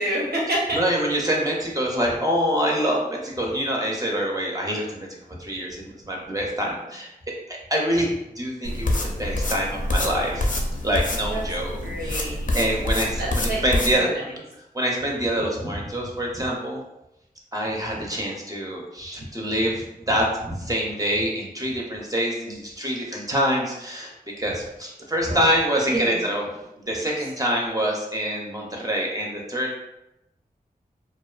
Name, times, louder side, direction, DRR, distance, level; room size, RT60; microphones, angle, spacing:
voice 1, 0.0-0.8 11.3-11.4 11.8-12.6 13.2-13.6 13.9-14.3 25.2-25.5 25.9-26.1 26.8-26.9, right 1 dB, 85° right, -4 dB, 0.7 m, -28 dB
voice 2, 0.7-5.1 5.4-7.1 7.7-10.5 10.8-12.2 12.5-14.1 14.7-16.8 17.5-26.4 26.9-29.7, equal, 20° right, -2 dB, 0.4 m, -25 dB
sound 1, 8.6-14.0, left 1 dB, 55° left, 0.4 m, -26 dB
2.4 x 2.2 x 2.3 m, 0.89 s
wide cardioid pair, 65°, 16 cm